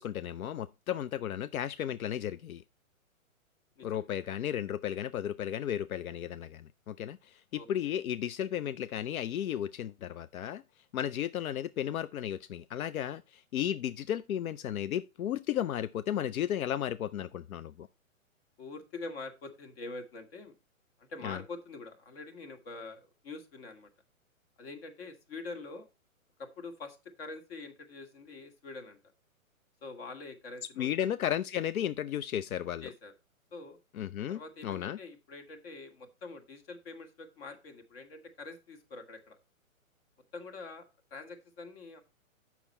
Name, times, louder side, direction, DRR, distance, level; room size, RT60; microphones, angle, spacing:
voice 1, 0.0-2.6 3.8-10.6 10.9-17.9 21.2-21.4 30.8-32.9 34.0-35.0, left 10 dB, 80° left, 0.5 m, -34 dB
voice 2, 3.8-4.1 7.5-8.0 18.6-20.5 21.0-23.9 24.6-25.9 26.4-29.0 29.8-31.1 32.8-33.1 33.5-33.8 34.3-39.4 40.3-42.0, left 3 dB, 45° left, 1.6 m, -45 dB
7.1 x 6.0 x 4.1 m
hypercardioid pair, 140°, 41 cm